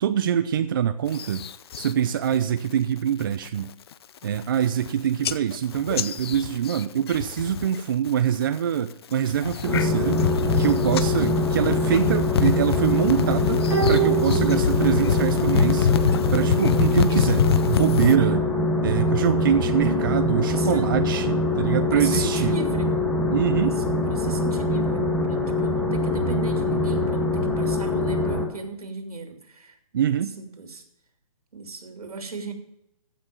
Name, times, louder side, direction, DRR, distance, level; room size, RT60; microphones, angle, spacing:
voice 1, 0.0-1.4 1.8-3.7 4.2-10.2 10.6-13.6 13.9-18.4 18.8-22.6 23.3-23.8 29.9-30.3, right 9 dB, 35° right, 10 dB, 0.6 m, -24 dB
sound 1, 1.1-1.9 2.3-2.7 3.1-3.5 3.9-4.0 4.2-4.9 5.2-7.8 8.1-8.6 9.1-18.2, left 8 dB, 45° left, 0.7 m, -26 dB
sound 2, 9.6-28.4, left 1 dB, 5° left, 1.7 m, -24 dB
sound 3, 13.7-15.3 15.6-15.7, right 11 dB, 20° right, 3.1 m, -26 dB
voice 2, 19.7-20.2 20.5-20.8 21.9-22.9 23.6-29.8 30.0-30.8 31.5-32.5, right 3 dB, 85° right, 5 dB, 3.1 m, -35 dB
15.0 x 6.1 x 7.5 m, 0.84 s
hypercardioid pair, 160°, 18 cm